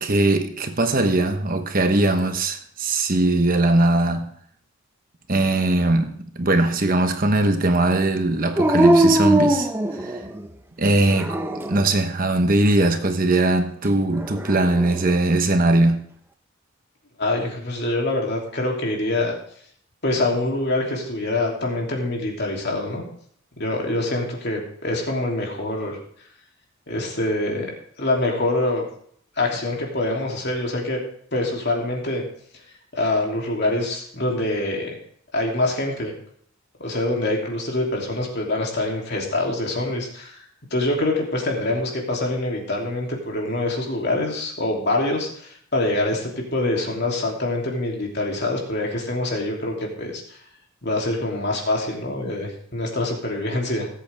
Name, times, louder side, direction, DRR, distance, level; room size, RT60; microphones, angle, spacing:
voice 1, 0.0-4.3 5.3-10.2 10.8-11.4 11.7-16.1, right 2 dB, 40° right, 1.1 m, -20 dB
Dog, 8.6-10.5 11.1-11.9 14.2-15.0, right 1 dB, 10° right, 0.7 m, -20 dB
voice 2, 17.2-19.3 20.0-23.0 23.6-26.0 26.9-27.7 28.0-28.8 29.4-31.0 31.3-32.3 32.9-34.9 35.3-36.1 36.8-40.4 40.7-50.2 50.8-53.9, left 2 dB, 50° left, 3.0 m, -25 dB
19.0 x 8.2 x 3.5 m
head